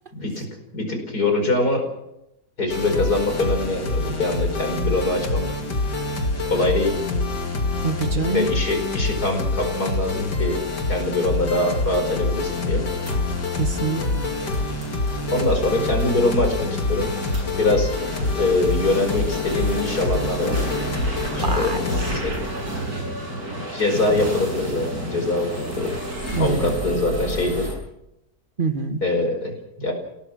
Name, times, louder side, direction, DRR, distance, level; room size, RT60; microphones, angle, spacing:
voice 1, 0.1-0.5 0.7-1.9 2.6-5.5 6.5-7.0 8.3-10.6 10.9-12.9 15.3-17.1 17.6-17.9 18.3-20.6 21.4-21.8 22.1-22.4 23.7-25.5 25.8-25.9 26.4-27.7 29.0-29.9, left 2 dB, 65° left, 4 dB, 5.4 m, -23 dB
sound 1, 2.7-22.2, left 3 dB, 80° left, 3.0 m, -26 dB
voice 2, 7.8-8.4 13.6-14.3 21.4-21.8 26.3-26.7 28.6-29.0, right 5 dB, 35° right, 9 dB, 1.4 m, -25 dB
sound 2, 9.6-27.7, right 1 dB, 65° right, 7.1 m, -32 dB
27.0 x 18.0 x 6.4 m, 0.88 s
omnidirectional pair, 1.8 m